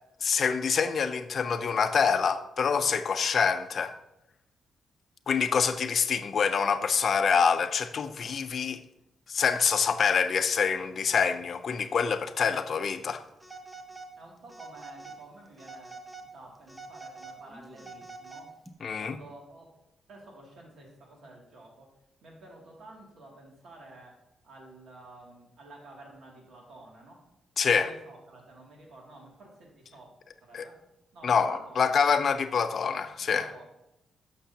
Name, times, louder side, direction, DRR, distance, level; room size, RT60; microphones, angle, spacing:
voice 1, 0.2-3.9 5.3-8.8 9.3-13.2 18.8-19.2 27.6-27.9 30.5-30.7 31.2-33.5, left 6 dB, 50° left, 0.6 m, -26 dB
Telephone, 13.4-14.1 14.5-15.2 15.6-16.3 16.7-18.7, right 3 dB, 10° right, 0.8 m, -45 dB
voice 2, 14.2-18.5 19.0-19.7 20.1-21.9 22.2-27.2 27.7-30.1 30.4-30.8 31.1-32.0 33.2-33.6, right 2 dB, 65° right, 2.5 m, -51 dB
11.5 x 6.7 x 2.9 m
cardioid pair, 140°, 0 cm